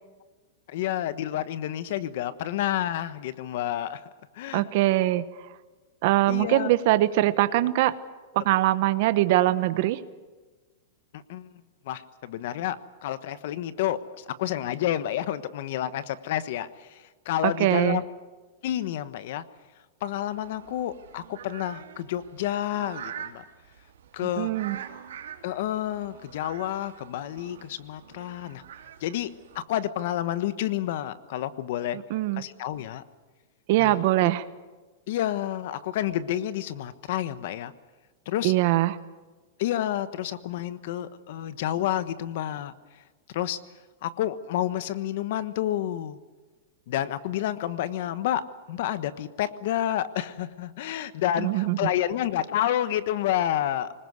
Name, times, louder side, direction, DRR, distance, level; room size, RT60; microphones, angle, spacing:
voice 1, 0.7-4.1 4.3-4.7 6.3-6.7 11.1-11.5 11.8-18.0 18.6-19.4 20.0-23.4 24.1-24.5 25.4-28.6 29.0-32.0 32.3-33.0 33.8-34.0 35.1-37.7 38.3-38.5 39.6-42.7 43.3-43.6 44.0-46.2 46.9-53.9, left 12 dB, 60° left, 14 dB, 1.2 m, -29 dB
voice 2, 4.5-5.2 6.0-8.0 8.3-10.0 17.4-18.0 24.4-24.8 32.1-32.4 33.7-34.4 38.4-39.0 51.4-51.8, right 16 dB, 50° right, 13 dB, 1.1 m, -22 dB
sound 1, 20.1-29.6, right 9 dB, 90° right, 3.2 m, -45 dB
25.0 x 20.5 x 8.1 m, 1.3 s
supercardioid pair, 160°, 0 cm